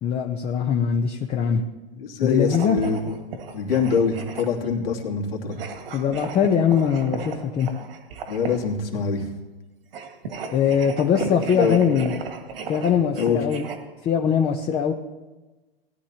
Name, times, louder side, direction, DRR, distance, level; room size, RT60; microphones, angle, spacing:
voice 1, 0.0-1.6 2.2-2.8 5.9-7.7 10.5-12.1 12.7-13.7 14.0-14.9, left 7 dB, 20° left, 3 dB, 0.8 m, -21 dB
voice 2, 2.0-3.2 3.5-5.6 8.3-9.2 11.5-11.8 13.1-13.4, left 5 dB, 70° left, -1 dB, 2.8 m, -24 dB
sound 1, 2.4-4.7 5.5-8.8 9.8-13.8, right 4 dB, 70° right, 2.1 m, -36 dB
19.5 x 11.0 x 2.9 m, 1.1 s
hypercardioid pair, 135°, 30 cm